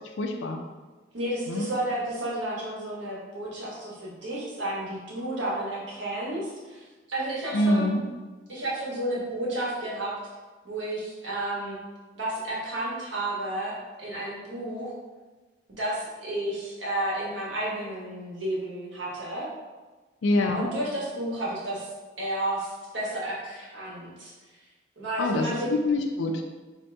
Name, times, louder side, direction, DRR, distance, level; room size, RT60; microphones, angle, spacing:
voice 1, 0.2-0.6 1.5-1.7 7.5-8.0 20.2-20.7 25.2-26.4, left 1 dB, 75° left, 4 dB, 0.4 m, -25 dB
voice 2, 1.1-7.9 8.5-10.1 10.6-11.8 12.1-14.9 15.8-19.5 20.4-21.9 22.2-24.3 25.0-25.7, right 1 dB, 75° right, -5 dB, 1.2 m, -32 dB
3.8 x 2.7 x 3.3 m, 1.3 s
head